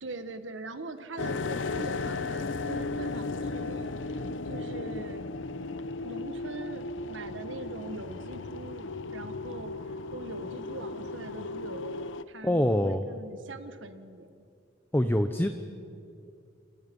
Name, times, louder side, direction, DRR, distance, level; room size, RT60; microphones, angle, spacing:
voice 1, 0.0-5.2 6.0-14.5, right 2 dB, 80° right, 9 dB, 1.6 m, -42 dB
sound 1, 1.2-12.2, left 3 dB, 85° left, 0.9 m, -35 dB
voice 2, 12.4-13.0 14.9-15.5, left 1 dB, 10° left, 8 dB, 0.8 m, -24 dB
28.0 x 28.0 x 5.4 m, 2.5 s
head